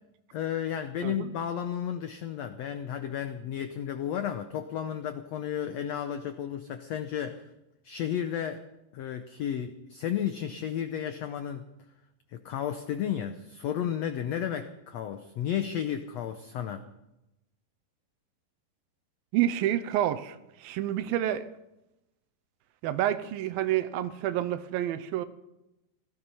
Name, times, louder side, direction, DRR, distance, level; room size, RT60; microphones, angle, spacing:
voice 1, 0.3-7.5 7.8-8.6 8.9-11.7 12.3-16.8, left 9 dB, 90° left, 8 dB, 1.4 m, -33 dB
voice 2, 19.3-21.5 22.8-25.3, right 12 dB, 90° right, 12 dB, 2.6 m, -28 dB
17.5 x 13.5 x 5.6 m, 0.93 s
omnidirectional pair, 4.1 m